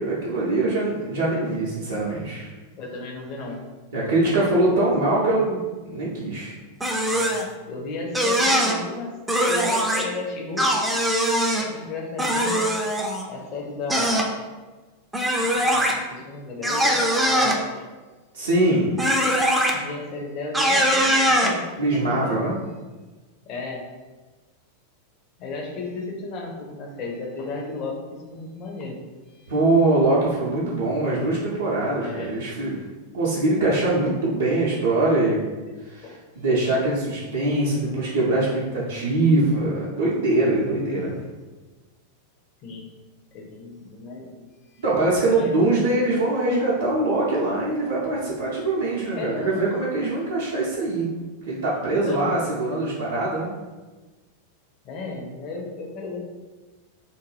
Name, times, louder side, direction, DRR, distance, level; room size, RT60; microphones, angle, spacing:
voice 1, 0.0-2.5 3.9-5.6 5.9-6.5 18.3-18.9 21.8-22.5 29.5-32.8 33.1-35.4 35.8-41.1 44.8-51.1 51.5-53.5, right 2 dB, 65° right, -8 dB, 0.5 m, -23 dB
voice 2, 2.7-3.6 4.0-4.8 7.1-9.1 9.4-10.7 11.5-12.7 13.2-14.3 15.5-17.9 19.7-22.4 23.5-23.9 25.4-29.0 29.3-29.5 31.9-32.3 36.0-36.2 40.6-41.0 42.6-42.9 43.3-44.4 44.7-44.8 45.2-45.6 49.2-49.6 52.0-52.4 54.8-56.2, left 3 dB, 40° left, 1 dB, 0.6 m, -34 dB
sound 1, 6.8-7.5 8.1-8.7 9.3-10.0 10.6-11.6 12.2-13.2 13.9-14.3 15.1-15.9 16.6-17.6 19.0-19.7 20.5-21.5, equal, 10° right, 0.4 m, -21 dB
2.5 x 2.2 x 3.2 m, 1.3 s
figure-of-eight pair, 90°, 0 cm